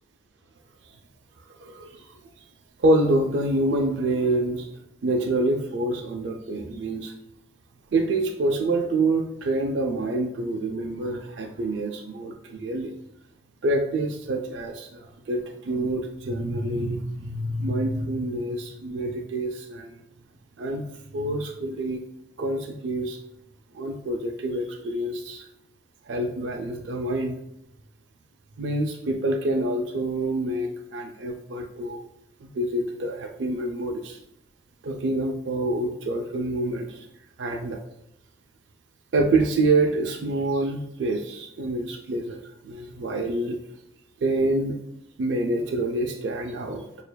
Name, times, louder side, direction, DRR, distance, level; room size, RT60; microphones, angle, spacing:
voice 1, 1.5-2.2 2.8-4.7 5.0-7.1 7.9-12.9 13.6-20.0 20.6-20.9 21.1-22.0 22.4-23.2 23.7-25.5 26.1-27.4 28.6-32.0 32.4-34.2 34.8-37.1 37.4-37.8 39.1-43.6 44.2-44.8 45.2-46.9, right 2 dB, 90° right, 3 dB, 0.4 m, -27 dB
6.6 x 2.5 x 2.2 m, 0.82 s
head